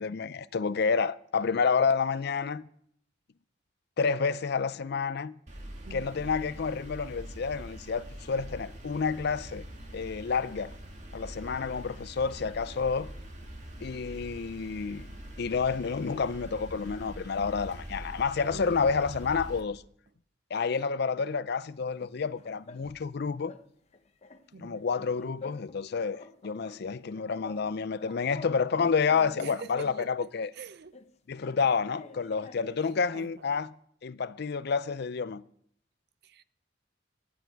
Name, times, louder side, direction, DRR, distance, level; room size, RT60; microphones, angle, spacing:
voice 1, 0.0-2.7 4.0-5.4 5.9-9.7 9.9-10.7 11.1-13.1 13.8-15.1 15.4-19.8 20.5-23.5 24.6-30.5 31.3-33.7 34.0-35.4, left 5 dB, 60° left, 0.5 m, -29 dB
sound 1, 5.5-19.6, equal, 40° right, 2.1 m, -44 dB
voice 2, 5.8-6.3 18.5-18.9 24.5-24.8 29.4-30.3 30.5-30.9 33.1-33.4 36.2-36.4, right 4 dB, 60° right, 0.6 m, -45 dB
sound 2, 21.7-23.1 23.4-23.7 23.9-25.8 26.1-27.7 27.9-30.1 30.9-32.9, left 3 dB, 35° left, 0.8 m, -48 dB
17.0 x 10.5 x 4.6 m
head